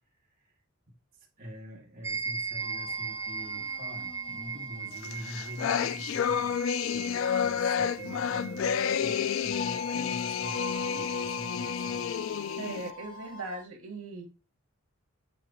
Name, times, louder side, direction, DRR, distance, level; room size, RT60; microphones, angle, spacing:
voice 1, 0.2-0.5 1.1-12.1, equal, 45° right, 1.6 m, -46 dB
sound 1, 2.0-10.7, right 5 dB, 15° right, 0.6 m, -39 dB
sound 2, 2.6-13.6, left 2 dB, 40° left, 1.6 m, -42 dB
sound 3, 5.0-12.9, left 7 dB, 60° left, 0.3 m, -30 dB
voice 2, 12.6-14.3, right 2 dB, 80° right, 2.0 m, -39 dB
7.6 x 2.8 x 5.0 m
head